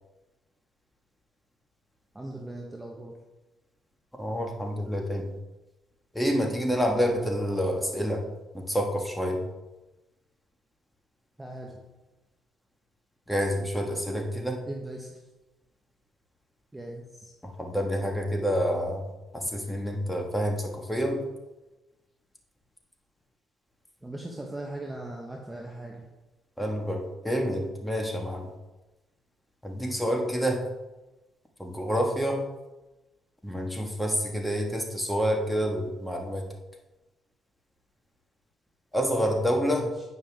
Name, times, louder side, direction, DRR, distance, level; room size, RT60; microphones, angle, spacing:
voice 1, 2.1-3.1 11.4-11.7 14.7-15.2 16.7-17.3 24.0-26.1 39.7-39.9, right 1 dB, 15° right, 0 dB, 1.0 m, -39 dB
voice 2, 4.2-5.3 6.1-8.2 8.5-9.4 13.3-14.6 17.4-19.0 19.3-21.2 26.6-28.5 29.6-30.6 31.6-32.4 33.4-36.4 38.9-39.9, equal, 5° left, 1 dB, 1.5 m, -28 dB
9.1 x 5.4 x 3.5 m, 1.1 s
cardioid pair, 90°, 0 cm